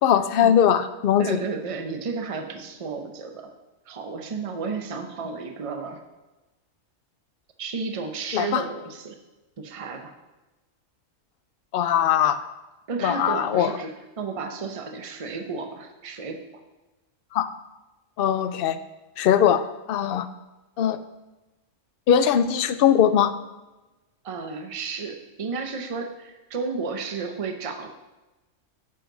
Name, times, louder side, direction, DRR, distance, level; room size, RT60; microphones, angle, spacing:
voice 1, 0.0-1.4 8.3-8.6 11.7-12.4 13.0-13.7 17.3-17.5 18.2-18.8 19.2-20.3 20.8-21.0 22.1-23.3, left 9 dB, 60° left, 12 dB, 0.6 m, -20 dB
voice 2, 1.2-3.5 3.9-6.0 7.6-9.2 9.6-10.1 12.9-16.4 24.2-27.9, right 4 dB, 30° right, 5 dB, 0.8 m, -32 dB
9.5 x 7.3 x 3.9 m, 1.1 s
omnidirectional pair, 1.3 m